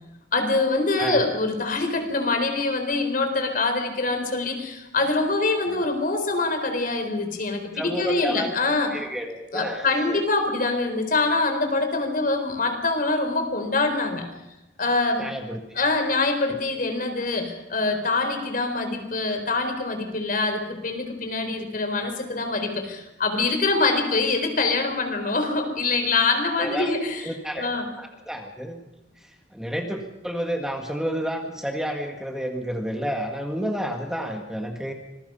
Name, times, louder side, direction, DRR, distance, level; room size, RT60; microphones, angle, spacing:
voice 1, 0.3-8.9 9.5-14.3 14.8-15.3 15.7-27.3 27.6-27.9, left 3 dB, 50° left, 6 dB, 4.1 m, -24 dB
voice 2, 7.7-10.2 15.2-15.8 26.6-26.9 27.2-27.7 28.0-28.8 29.2-34.9, equal, 5° right, 3 dB, 2.0 m, -30 dB
26.5 x 21.0 x 5.6 m, 0.95 s
head